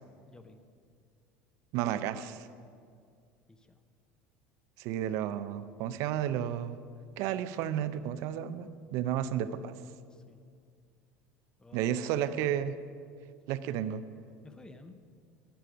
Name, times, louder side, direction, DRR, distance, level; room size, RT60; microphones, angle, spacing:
voice 1, 0.3-0.6 3.5-3.8 10.1-10.4 11.6-11.9 14.4-14.9, left 3 dB, 15° left, 9 dB, 0.9 m, -53 dB
voice 2, 1.7-2.5 4.8-6.8 7.2-9.8 11.7-12.7 13.5-14.0, right 10 dB, 65° right, 13 dB, 0.5 m, -32 dB
11.5 x 9.1 x 5.0 m, 2.2 s
hypercardioid pair, 90°, 6 cm